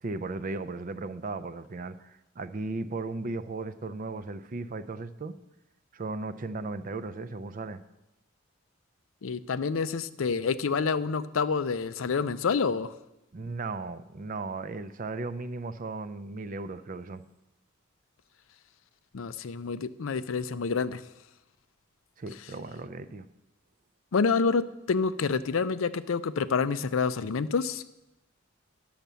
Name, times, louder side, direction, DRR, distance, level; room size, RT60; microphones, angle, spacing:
voice 1, 0.0-5.4 5.9-7.8 13.3-17.2 22.2-23.3, right 3 dB, 40° right, 13 dB, 0.5 m, -36 dB
voice 2, 9.2-12.9 19.1-21.0 24.1-27.8, left 5 dB, 75° left, 14 dB, 0.5 m, -28 dB
10.5 x 7.3 x 6.8 m, 0.94 s
head